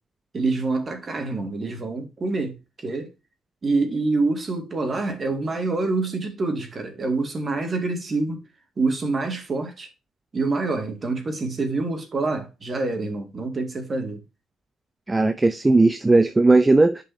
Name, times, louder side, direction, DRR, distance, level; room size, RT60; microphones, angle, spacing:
voice 1, 0.3-2.6 2.8-3.1 3.6-8.4 8.8-9.9 10.3-14.2, right 3 dB, 30° right, 2.2 m, -26 dB
voice 2, 15.1-17.0, right 2 dB, 15° right, 0.6 m, -17 dB
10.5 x 5.4 x 2.8 m
cardioid pair, 120°, 0 cm